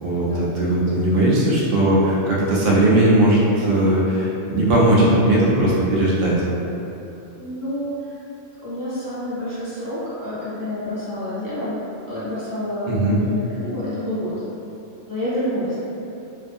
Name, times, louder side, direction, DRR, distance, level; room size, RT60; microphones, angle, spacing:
voice 1, 0.0-6.3 12.9-13.2, right 1 dB, 75° right, -7 dB, 1.0 m, -18 dB
voice 2, 7.3-8.1 8.6-11.8 12.1-14.3 15.1-15.8, left 1 dB, 20° left, -13 dB, 0.6 m, -28 dB
2.6 x 2.3 x 2.6 m, 2.8 s
omnidirectional pair, 1.3 m